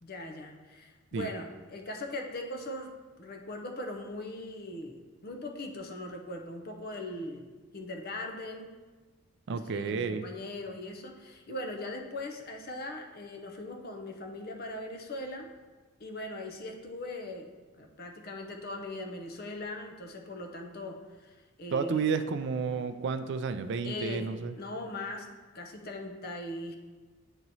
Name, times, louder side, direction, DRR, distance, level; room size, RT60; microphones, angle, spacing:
voice 1, 0.0-8.7 9.5-15.5 16.0-17.5 17.8-22.1 23.8-25.3 25.5-26.8, left 1 dB, 45° left, 3 dB, 0.6 m, -40 dB
voice 2, 9.5-10.2 21.7-24.5, right 5 dB, 55° right, 10 dB, 0.3 m, -31 dB
8.9 x 3.0 x 4.0 m, 1.3 s
head